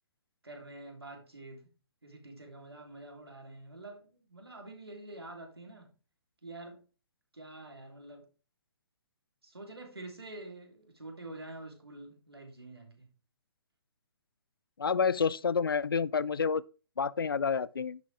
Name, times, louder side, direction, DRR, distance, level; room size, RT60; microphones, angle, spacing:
voice 1, 0.4-1.7 2.0-5.9 6.4-6.8 7.3-8.3 9.4-13.1, right 2 dB, 80° right, 3.2 m, -47 dB
voice 2, 14.8-16.6 17.0-18.0, left 6 dB, 65° left, 0.5 m, -29 dB
10.5 x 7.4 x 3.4 m
figure-of-eight pair, 130°, 13 cm